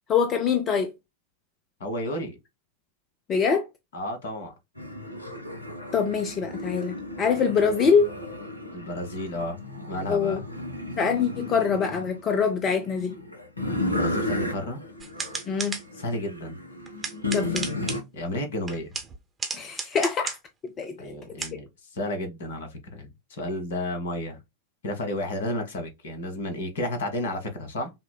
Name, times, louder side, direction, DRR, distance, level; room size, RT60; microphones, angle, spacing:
voice 1, 0.1-0.9 3.3-3.7 5.9-8.1 10.1-10.4 11.0-13.2 15.5-15.8 17.3-17.7 19.5-20.4 20.8-21.1, left 6 dB, 30° left, 0.5 m, -24 dB
voice 2, 1.8-2.4 3.9-4.5 8.7-9.6 9.9-10.4 13.8-14.8 16.0-16.5 18.1-18.9 21.0-21.7 21.9-24.4 24.8-27.9, left 1 dB, 60° left, 1.1 m, -32 dB
sound 1, 4.8-18.0, left 2 dB, 85° left, 0.7 m, -34 dB
sound 2, 15.0-15.8 16.9-18.0 18.7-20.4 21.4-21.5, right 4 dB, 15° right, 0.9 m, -33 dB
5.7 x 2.1 x 2.2 m
figure-of-eight pair, 90°, 0 cm